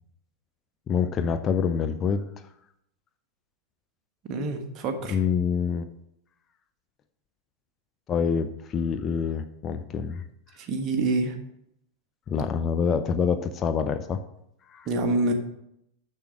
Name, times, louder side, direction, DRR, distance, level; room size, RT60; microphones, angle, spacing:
voice 1, 0.9-2.2 5.1-5.9 8.1-10.2 12.3-14.2 14.7-14.9, left 6 dB, 25° left, 9 dB, 0.5 m, -26 dB
voice 2, 4.3-5.2 10.6-11.3 14.9-15.3, right 2 dB, 35° right, 5 dB, 1.4 m, -26 dB
6.8 x 6.5 x 6.0 m, 0.77 s
figure-of-eight pair, 90°, 0 cm